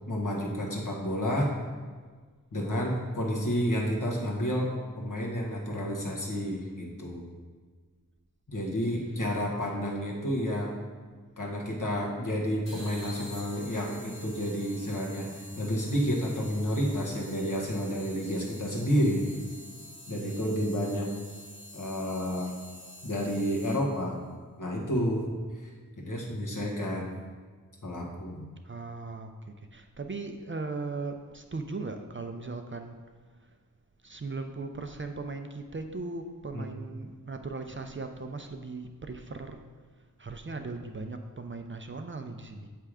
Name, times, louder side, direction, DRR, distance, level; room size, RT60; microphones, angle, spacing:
voice 1, 0.1-1.5 2.5-7.2 8.5-10.7 11.4-19.3 20.1-21.1 21.7-22.5 23.0-24.2 24.6-25.3 26.0-27.1 27.8-28.5 36.5-36.7, equal, 60° left, -2 dB, 1.3 m, -30 dB
sound 1, 12.6-24.1, equal, 35° left, 2.0 m, -48 dB
voice 2, 28.6-33.0 33.4-33.5 34.0-39.6 40.2-42.7, right 3 dB, 35° right, 6 dB, 0.5 m, -38 dB
7.4 x 3.4 x 4.9 m, 1.5 s
wide cardioid pair, 50°, 35 cm